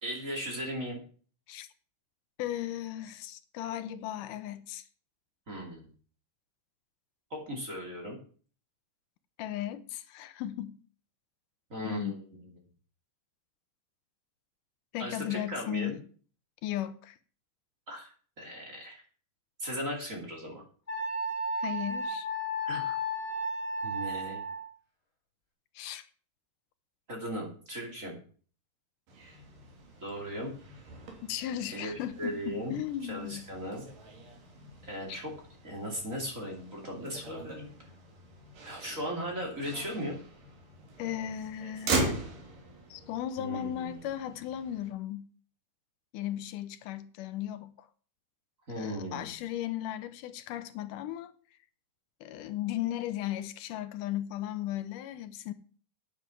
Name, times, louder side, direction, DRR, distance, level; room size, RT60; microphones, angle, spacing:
voice 1, 0.0-1.0 5.5-5.9 7.3-8.2 11.7-12.5 15.0-16.0 17.9-18.1 18.4-19.0 19.6-20.6 22.6-22.9 23.8-24.4 27.1-28.1 30.0-30.5 31.7-33.9 34.8-35.3 35.6-37.7 38.6-40.2 43.4-44.0 48.7-49.3, equal, 25° right, 2.9 m, -37 dB
voice 2, 2.4-4.8 9.4-10.8 11.8-12.1 14.9-16.0 16.6-17.2 21.6-22.3 25.8-26.1 31.3-33.4 41.0-42.2 42.9-45.3 46.1-47.9 48.8-51.3 52.2-55.5, left 12 dB, 80° left, 2.3 m, -36 dB
Wind instrument woodwind instrument, 20.9-24.7, equal, 15° left, 4.8 m, -33 dB
Motor vehicle (road), 29.1-44.9, right 3 dB, 90° right, 4.3 m, -40 dB
9.6 x 9.2 x 5.8 m
omnidirectional pair, 3.7 m